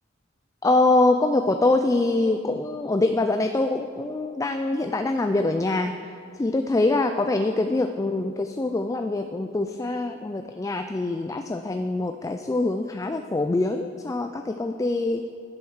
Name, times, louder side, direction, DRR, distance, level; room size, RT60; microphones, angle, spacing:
voice 1, 0.6-5.9 6.4-15.3, left 2 dB, 15° left, 6 dB, 0.3 m, -24 dB
10.5 x 7.9 x 6.4 m, 2.4 s
head